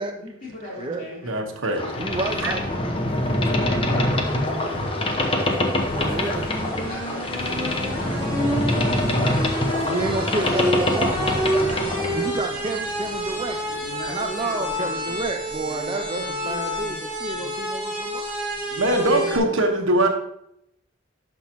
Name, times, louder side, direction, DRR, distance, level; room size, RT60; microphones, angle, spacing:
voice 1, 0.0-1.4 2.3-2.6 3.2-5.5 6.7-8.7 11.5-12.7 13.8-15.3 15.6-17.0 17.3-17.5 18.7-19.6, left 1 dB, 45° left, -5 dB, 3.5 m, -39 dB
voice 2, 1.2-1.9 2.4-2.5 18.8-20.1, right 1 dB, 85° right, 4 dB, 1.3 m, -22 dB
Boat Water vehicle, 1.8-12.3, left 1 dB, 25° left, 0.9 m, -24 dB
sound 1, 1.9-14.1, left 3 dB, 70° left, 0.8 m, -42 dB
voice 3, 2.0-2.8 5.9-6.5 8.4-8.5 8.7-9.5 9.8-11.6 12.1-13.6 14.1-18.3, right 3 dB, 25° right, 6 dB, 0.4 m, -30 dB
sound 2, 2.6-19.4, equal, 5° right, 2.9 m, -30 dB
11.5 x 6.0 x 3.0 m, 0.75 s
head